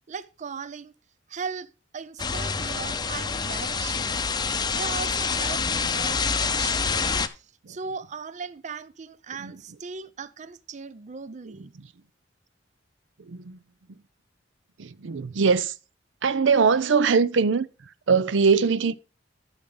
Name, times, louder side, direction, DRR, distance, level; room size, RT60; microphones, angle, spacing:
voice 1, 0.1-0.9 1.3-4.2 4.7-11.7, right 5 dB, 40° right, 0.5 m, -38 dB
sound 1, 2.2-7.3, left 5 dB, 25° left, 0.7 m, -27 dB
voice 2, 13.3-13.6 14.8-15.7 16.2-17.7 18.1-19.0, right 5 dB, 85° right, 0.6 m, -21 dB
12.5 x 6.3 x 3.8 m
head